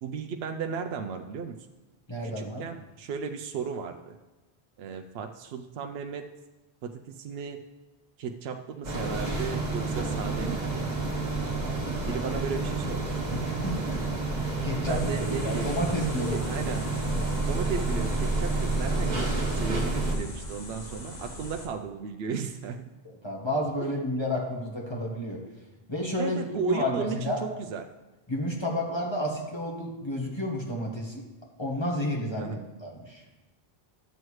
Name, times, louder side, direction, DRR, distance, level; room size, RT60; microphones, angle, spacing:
voice 1, 0.0-1.6 2.2-4.2 4.8-6.3 6.8-7.6 8.2-10.9 12.1-13.4 14.9-15.7 16.3-16.9 17.5-22.9 26.2-27.9 32.4-32.6, right 6 dB, 80° right, 5 dB, 0.8 m, -35 dB
voice 2, 2.1-2.6 13.3-14.0 14.4-15.1 15.4-16.4 23.0-25.4 25.9-27.4 28.3-31.2 31.6-33.2, left 1 dB, 25° left, -2 dB, 1.4 m, -31 dB
sound 1, 8.8-20.2, right 2 dB, 45° right, 1.4 m, -29 dB
sound 2, 14.9-21.7, left 1 dB, 45° left, 1.1 m, -42 dB
12.0 x 7.7 x 3.2 m, 1.1 s
omnidirectional pair, 1.0 m